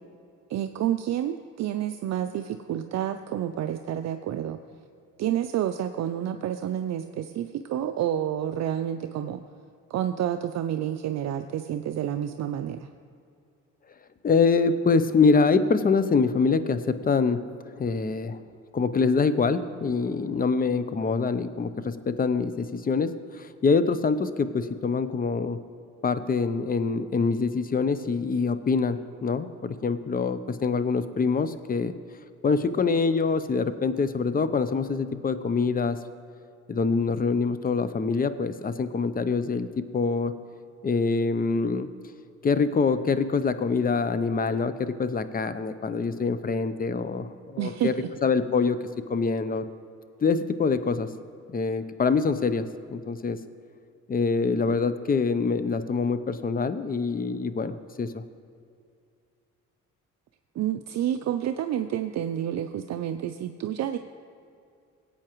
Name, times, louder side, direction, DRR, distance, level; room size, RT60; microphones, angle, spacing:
voice 1, 0.5-4.6 5.2-9.4 9.9-12.9 47.6-48.1 60.5-64.0, right 10 dB, 60° right, 8 dB, 0.5 m, -29 dB
voice 2, 14.2-18.4 18.7-25.6 26.0-31.9 32.4-36.0 36.7-40.3 40.8-41.9 42.4-47.9 48.2-48.8 49.1-49.6 50.2-51.1 51.5-53.4 54.1-58.2, left 4 dB, 30° left, 12 dB, 0.6 m, -25 dB
18.0 x 8.6 x 3.0 m, 2.5 s
cardioid pair, 90°, 30 cm